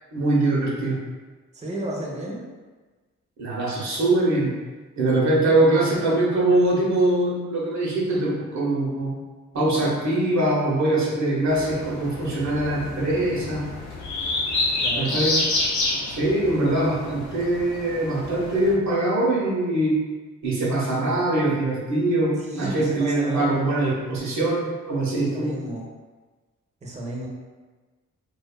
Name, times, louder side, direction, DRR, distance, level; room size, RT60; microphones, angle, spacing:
voice 1, 0.1-1.0 3.4-4.5 5.0-9.1 9.5-13.6 15.0-15.4 16.0-19.9 20.4-25.5, right 2 dB, 60° right, -4 dB, 0.8 m, -22 dB
voice 2, 1.5-2.4 14.7-15.2 22.4-23.6 25.3-25.8 26.8-27.3, right 1 dB, 20° right, -3 dB, 0.6 m, -33 dB
sound 1, 11.5-18.7, left 2 dB, 60° left, 0.6 m, -29 dB
2.4 x 2.3 x 2.2 m, 1.3 s
supercardioid pair, 45°, 32 cm